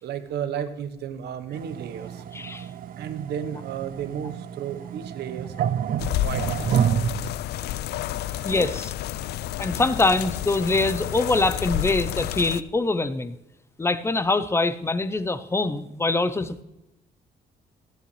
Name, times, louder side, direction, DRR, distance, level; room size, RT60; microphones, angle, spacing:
voice 1, 0.0-2.2 3.0-5.5 6.0-6.8 8.2-8.7, right 8 dB, 80° right, 11 dB, 1.0 m, -34 dB
sound 1, 1.5-7.3, right 9 dB, 60° right, 0.5 m, -29 dB
voice 2, 2.3-2.7 8.4-8.9 9.6-13.4 13.8-16.6, left 3 dB, 15° left, 13 dB, 0.7 m, -24 dB
sound 2, 6.0-12.6, left 13 dB, 80° left, 0.4 m, -30 dB
14.0 x 9.4 x 3.2 m, 0.92 s
cardioid pair, 115°, 17 cm